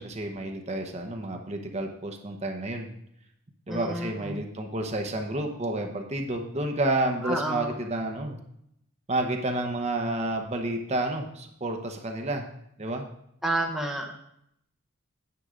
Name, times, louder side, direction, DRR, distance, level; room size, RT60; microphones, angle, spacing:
voice 1, 0.0-2.9 3.7-8.4 9.1-12.4 12.8-13.0, right 2 dB, 35° right, 3 dB, 0.9 m, -30 dB
voice 2, 3.7-4.4 7.2-7.7 13.4-14.2, right 1 dB, ahead, 0 dB, 0.9 m, -30 dB
9.7 x 7.6 x 3.8 m, 0.74 s
head